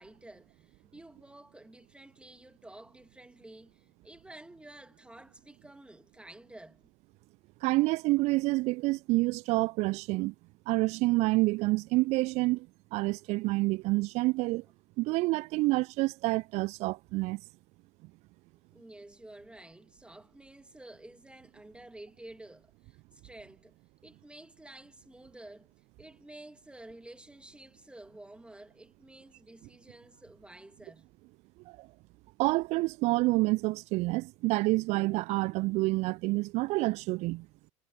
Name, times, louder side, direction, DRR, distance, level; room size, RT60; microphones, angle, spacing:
voice 1, 0.0-6.9 18.7-23.8 24.0-31.1, right 1 dB, 5° right, 2.4 m, -51 dB
voice 2, 7.6-10.3 10.7-12.7 12.9-14.6 15.0-17.4 31.8-31.9 32.4-37.5, right 22 dB, 40° right, 0.4 m, -28 dB
figure-of-eight pair, 75°, 18 cm